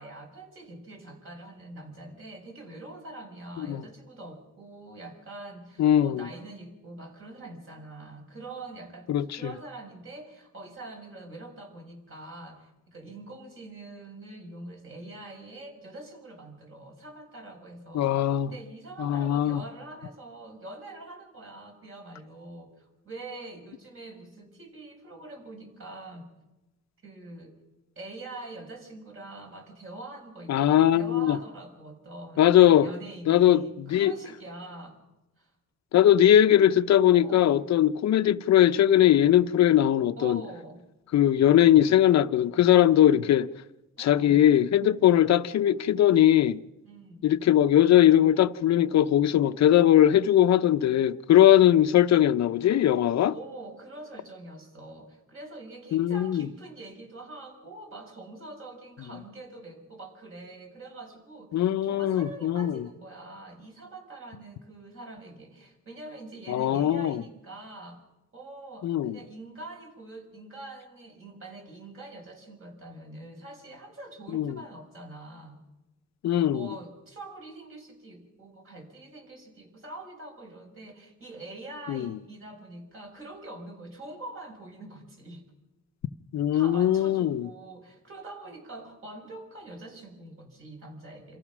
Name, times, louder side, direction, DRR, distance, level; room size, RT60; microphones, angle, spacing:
voice 1, 0.0-26.3 27.0-27.5 27.9-30.5 30.9-35.0 35.4-35.5 37.1-37.6 40.1-40.8 44.0-44.4 46.8-47.3 53.3-68.0 68.3-75.6 76.5-85.4 86.5-91.4, right 2 dB, 45° right, 6.8 m, -44 dB
voice 2, 5.8-6.3 9.1-9.5 17.9-18.5 19.0-19.6 30.5-31.4 32.4-32.9 33.3-34.1 35.9-40.4 41.1-43.5 44.0-46.6 47.2-53.3 55.9-56.5 61.5-62.9 66.5-67.2 68.8-69.2 74.3-74.6 76.2-76.7 81.9-82.2 86.3-87.5, left 11 dB, 60° left, 0.8 m, -20 dB
28.0 x 15.0 x 6.1 m
cardioid pair, 90°, 30 cm